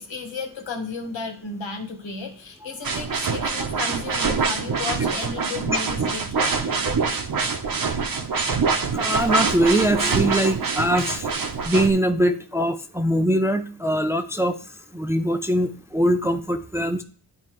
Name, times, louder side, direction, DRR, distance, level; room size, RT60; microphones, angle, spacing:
voice 1, 0.0-6.5, left 4 dB, 75° left, 3 dB, 1.7 m, -33 dB
sound 1, 2.8-11.9, right 5 dB, 50° right, 1.0 m, -25 dB
voice 2, 8.9-11.3 11.6-14.5 14.9-17.0, right 1 dB, 5° right, 6 dB, 0.5 m, -22 dB
10.5 x 4.5 x 3.1 m, 0.43 s
cardioid pair, 80°, 46 cm